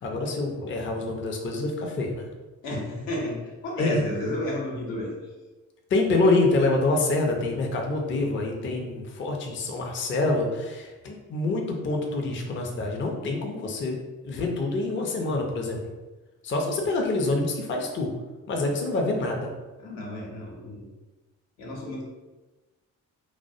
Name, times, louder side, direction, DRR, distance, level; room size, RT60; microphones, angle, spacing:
voice 1, 0.0-2.3 3.8-4.0 5.9-14.0 14.2-15.8 16.4-18.1 18.5-19.5, left 2 dB, 30° left, 1 dB, 0.5 m, -26 dB
voice 2, 2.6-3.4 3.6-5.1 19.8-20.9 21.6-22.0, left 1 dB, 80° left, -3 dB, 0.8 m, -31 dB
2.2 x 2.1 x 2.6 m, 1.2 s
hypercardioid pair, 50°, 41 cm